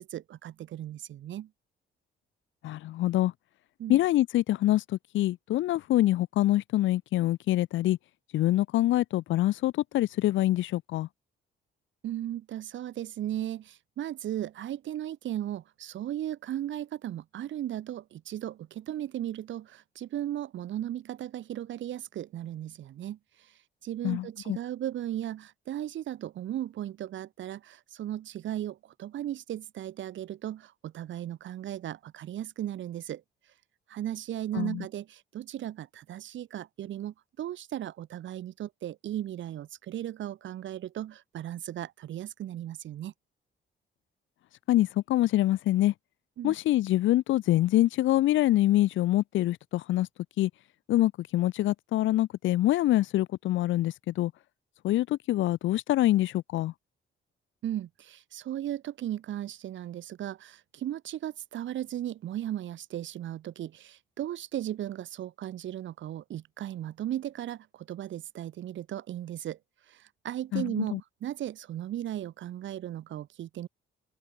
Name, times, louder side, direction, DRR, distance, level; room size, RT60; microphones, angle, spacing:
voice 1, 0.0-1.5 3.8-4.0 12.0-33.2 33.9-43.1 46.4-46.6 57.6-69.6 69.9-73.7, right 12 dB, 75° right, 3.6 m, -36 dB
voice 2, 2.6-3.3 3.9-8.0 8.3-11.1 24.0-24.6 34.5-34.8 44.7-45.9 46.4-50.1 50.4-50.5 50.9-54.3 54.8-56.7 70.5-71.0, left 15 dB, 80° left, 0.8 m, -25 dB
cardioid pair, 110°, 20 cm